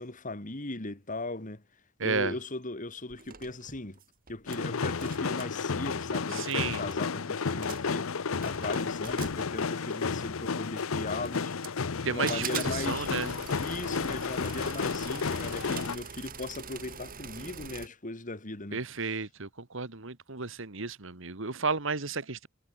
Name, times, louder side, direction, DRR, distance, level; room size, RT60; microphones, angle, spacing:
voice 1, 0.0-1.6 2.0-4.0 4.3-8.1 8.4-11.6 12.0-13.1 13.6-18.8, left 2 dB, 40° left, 2.6 m, -38 dB
voice 2, 2.0-2.3 6.3-6.8 12.0-13.3 18.7-22.5, right 4 dB, 70° right, 1.8 m, -33 dB
sound 1, 3.1-4.6 4.8-5.6 6.2-6.3 6.5-7.0 7.5-8.0 8.4-10.2 10.8-11.9 12.3-17.9, right 6 dB, 45° right, 3.5 m, -43 dB
sound 2, 4.5-16.0, left 5 dB, 85° left, 0.8 m, -32 dB
head